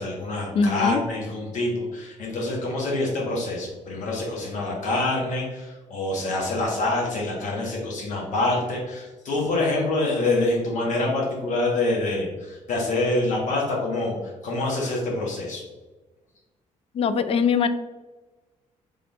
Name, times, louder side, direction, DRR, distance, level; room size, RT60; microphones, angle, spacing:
voice 1, 0.0-15.6, left 2 dB, 65° left, -2 dB, 1.5 m, -26 dB
voice 2, 0.5-1.0 16.9-17.7, left 5 dB, 45° left, 11 dB, 0.3 m, -21 dB
3.8 x 3.7 x 3.4 m, 1.2 s
cardioid pair, 140°, 14 cm